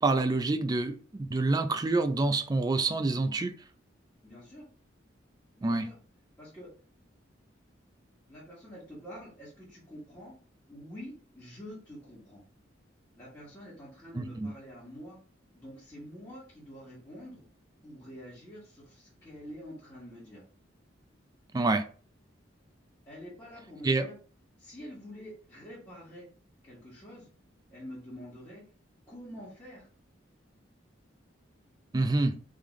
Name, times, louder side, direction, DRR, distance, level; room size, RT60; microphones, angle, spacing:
voice 1, 0.0-3.5 5.6-5.9 14.1-14.5 21.5-21.8 23.8-24.0 31.9-32.3, right 3 dB, 20° right, 7 dB, 0.3 m, -27 dB
voice 2, 4.2-4.7 5.5-6.0 6.4-6.7 8.3-10.3 10.7-12.4 13.2-15.2 15.5-17.4 17.8-20.4 23.0-24.2 24.6-26.3 26.6-27.3 27.7-28.6 29.1-29.9, equal, 20° left, -10 dB, 1.5 m, -47 dB
3.7 x 3.3 x 3.0 m, 0.41 s
head